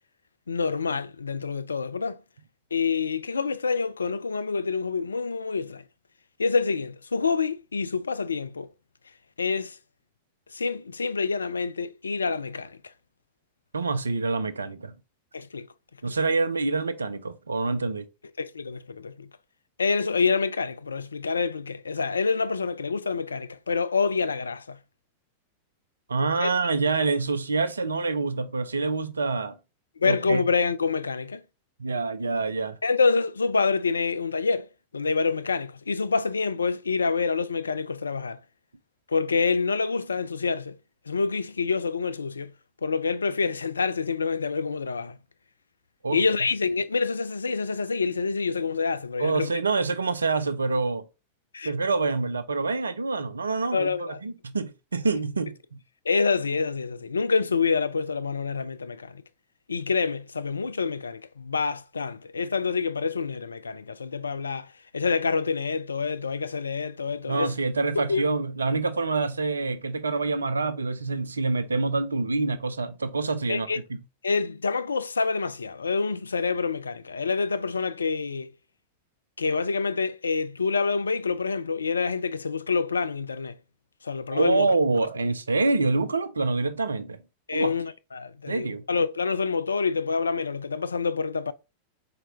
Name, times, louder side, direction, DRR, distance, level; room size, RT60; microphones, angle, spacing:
voice 1, 0.5-2.2 2.7-5.8 6.4-8.7 9.4-9.8 10.5-12.8 15.3-15.7 16.1-16.2 18.4-19.3 19.8-24.8 26.4-26.5 30.0-31.4 32.8-34.7 34.9-38.4 39.1-40.8 41.1-42.5 42.8-45.2 46.1-49.5 51.5-51.7 53.7-54.2 56.1-59.2 59.7-67.5 68.0-68.3 73.5-73.8 74.2-78.5 79.4-83.6 84.0-84.7 87.5-91.5, left 4 dB, 75° left, 0.3 m, -27 dB
voice 2, 13.7-14.9 16.0-18.1 26.1-29.6 30.0-30.5 31.8-32.8 46.0-46.2 49.2-51.1 51.6-55.6 67.3-74.0 84.3-87.2 87.5-87.7 88.5-88.8, right 3 dB, 75° right, 0.5 m, -26 dB
4.3 x 3.9 x 2.7 m
figure-of-eight pair, 90°, 0 cm